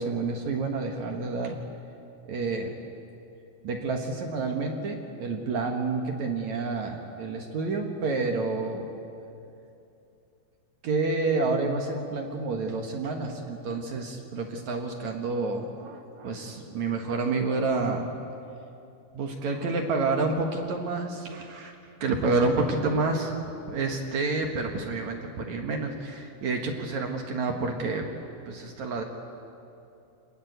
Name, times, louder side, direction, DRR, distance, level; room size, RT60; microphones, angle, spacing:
voice 1, 0.0-1.6 2.3-2.8 3.6-8.9 10.8-18.1 19.1-21.7 22.0-23.3 23.7-28.0 28.5-29.0, right 3 dB, 55° right, 2 dB, 2.1 m, -29 dB
27.0 x 20.0 x 8.1 m, 2.7 s
omnidirectional pair, 5.3 m